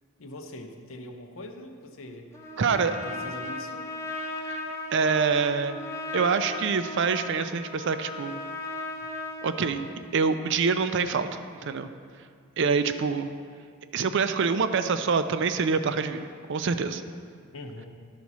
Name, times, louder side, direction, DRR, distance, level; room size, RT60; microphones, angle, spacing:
voice 1, 0.2-2.3 2.7-3.9 17.5-17.9, left 1 dB, 70° left, 5 dB, 0.7 m, -42 dB
Trumpet, 2.3-10.0, left 2 dB, 15° left, 0.8 m, -37 dB
voice 2, 2.6-3.0 4.4-4.6 4.9-5.8 6.1-8.4 9.4-9.8 10.1-11.9 12.6-13.3 13.9-17.0, right 5 dB, 60° right, 10 dB, 0.5 m, -26 dB
11.5 x 4.1 x 6.0 m, 2.1 s
head